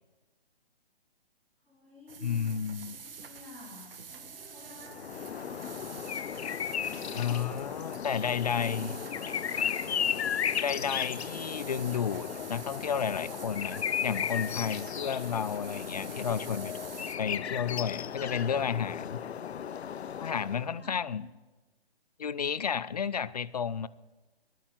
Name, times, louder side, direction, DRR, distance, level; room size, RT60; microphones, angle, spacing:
voice 1, 1.6-2.5 2.8-5.8 6.3-7.3 7.7-10.4 20.3-21.2, left 3 dB, 5° left, -8 dB, 3.6 m, -52 dB
sound 1, 2.1-17.2, right 6 dB, 60° right, 1.7 m, -47 dB
voice 2, 2.2-3.0 7.1-8.9 10.6-16.8 17.2-19.2 20.2-21.3 22.2-23.9, left 7 dB, 40° left, 19 dB, 0.4 m, -32 dB
sound 2, 4.8-20.8, left 8 dB, 85° left, 0.6 m, -35 dB
15.0 x 9.2 x 8.9 m, 1.2 s
hypercardioid pair, 165°, 31 cm